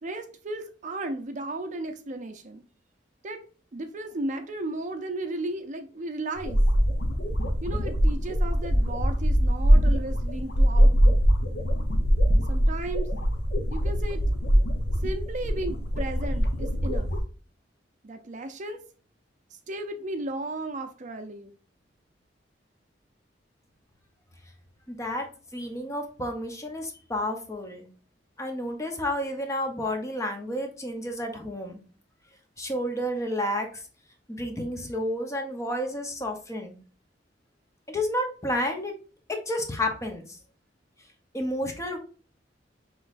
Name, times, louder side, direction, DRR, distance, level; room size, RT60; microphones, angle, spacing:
voice 1, 0.0-2.6 3.2-3.4 3.7-6.6 7.6-11.2 12.5-13.1 13.7-14.2 15.0-17.1 18.0-18.8 19.7-21.5, right 2 dB, 40° right, 0.5 m, -35 dB
sound 1, 6.4-17.2, equal, 60° left, 0.8 m, -23 dB
voice 2, 24.9-25.3 25.5-27.8 28.4-31.8 32.6-33.8 34.3-36.7 37.9-38.9 39.3-40.2 41.3-42.0, left 1 dB, 15° left, 0.8 m, -30 dB
6.0 x 3.1 x 2.5 m
head